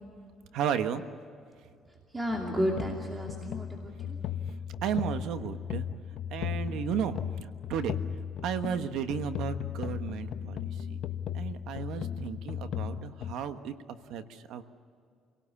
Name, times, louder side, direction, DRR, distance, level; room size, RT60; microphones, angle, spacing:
voice 1, 0.5-1.0 4.8-5.9 6.3-8.0 8.4-11.0 11.3-13.7 14.1-14.6, right 8 dB, 85° right, 9 dB, 1.3 m, -34 dB
voice 2, 1.9-4.2, equal, 20° right, 0 dB, 2.7 m, -33 dB
sound 1, 2.3-13.3, left 9 dB, 65° left, 0.9 m, -36 dB
28.0 x 18.0 x 8.5 m, 2.3 s
cardioid pair, 130°, 0 cm